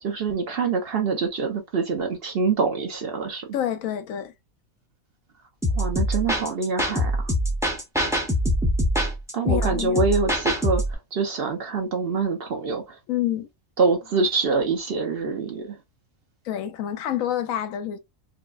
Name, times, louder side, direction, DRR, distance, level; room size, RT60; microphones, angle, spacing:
voice 1, 0.0-3.6 5.7-7.3 9.3-13.0 13.8-15.8, right 4 dB, 55° right, 0.8 m, -25 dB
voice 2, 3.5-4.3 9.4-10.0 13.1-13.5 16.4-18.0, left 11 dB, 80° left, 1.0 m, -27 dB
sound 1, 5.6-10.9, equal, 5° right, 0.5 m, -24 dB
4.6 x 2.1 x 2.4 m
omnidirectional pair, 1.4 m